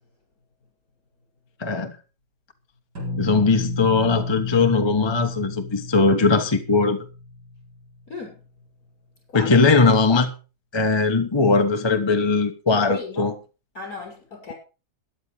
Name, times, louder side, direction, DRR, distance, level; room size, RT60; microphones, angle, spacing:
voice 1, 1.6-1.9 3.2-7.0 9.3-10.3 10.7-13.3, left 3 dB, 20° left, 0.9 m, -19 dB
sound 1, 3.0-7.9, left 2 dB, 70° right, 7.6 m, -32 dB
voice 2, 8.1-8.4 9.3-9.6 12.7-13.3 13.7-14.5, left 4 dB, 55° left, 7.0 m, -34 dB
13.5 x 11.0 x 4.7 m
omnidirectional pair, 1.8 m